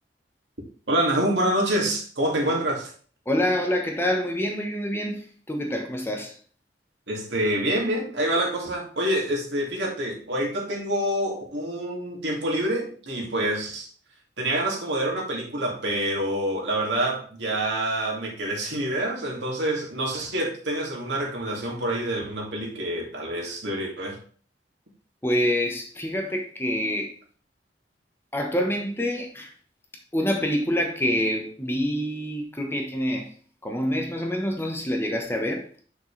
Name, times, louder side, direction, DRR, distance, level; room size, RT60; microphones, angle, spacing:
voice 1, 0.9-2.9 7.1-13.9 14.4-24.2, right 1 dB, 85° right, 2.3 m, -27 dB
voice 2, 3.3-6.4 25.2-27.1 28.3-29.5 30.1-33.3 33.6-35.7, equal, 15° left, 1.1 m, -26 dB
6.8 x 6.4 x 3.3 m
head